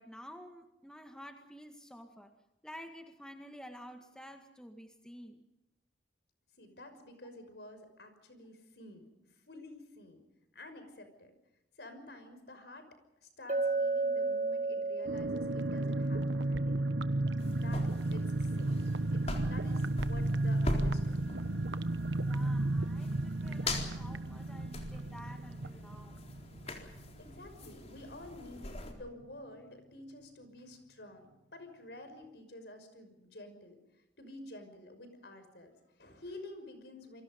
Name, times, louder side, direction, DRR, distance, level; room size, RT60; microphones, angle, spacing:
voice 1, 0.0-2.3 2.6-5.4 22.3-26.3, equal, 5° left, 5 dB, 1.8 m, -51 dB
voice 2, 6.6-9.1 9.5-10.2 10.5-11.3 11.8-12.9 13.2-17.0 17.5-17.8 18.1-18.8 19.1-21.5 27.2-33.8 34.2-37.2, left 1 dB, 65° left, 8 dB, 5.9 m, -50 dB
Chink clink, 13.5-17.5, right 3 dB, 45° right, 2.2 m, -34 dB
sound 1, 15.1-27.4 27.7-27.8 28.1-28.3, right 2 dB, 85° right, 1.2 m, -33 dB
sound 2, 17.4-28.9, left 1 dB, 35° left, 4.1 m, -42 dB
29.0 x 23.5 x 5.3 m, 0.92 s
head